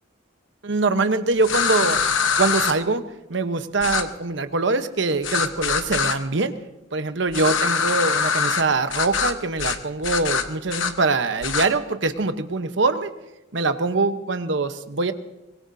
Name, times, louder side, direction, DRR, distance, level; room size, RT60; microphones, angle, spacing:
voice 1, 0.6-2.0 2.4-3.0 3.3-6.5 6.9-13.1 13.5-15.1, right 3 dB, 75° right, 9 dB, 1.0 m, -23 dB
sound 1, 1.4-2.7 3.8-4.0 5.2-6.2 7.3-8.6 8.9-9.3 9.6-9.8 10.0-10.9 11.4-11.7, left 6 dB, 90° left, 1.1 m, -23 dB
23.5 x 20.5 x 2.8 m, 0.98 s
head